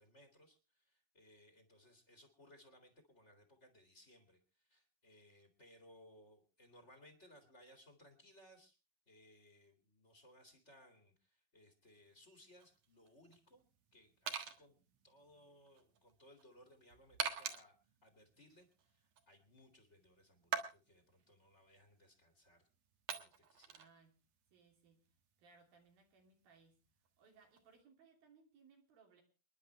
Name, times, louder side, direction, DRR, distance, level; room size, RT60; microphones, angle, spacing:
voice 1, 0.0-8.8 9.1-14.8 15.0-22.6 23.1-23.9, equal, 25° left, 4 dB, 1.9 m, -64 dB
sound 1, 11.8-27.7, right 7 dB, 55° right, 2.2 m, -48 dB
voice 2, 23.7-24.2 24.5-25.1 25.4-26.8 27.2-29.2, right 5 dB, 85° right, 2 dB, 4.8 m, -67 dB
28.0 x 10.5 x 3.2 m, 0.33 s
omnidirectional pair, 4.1 m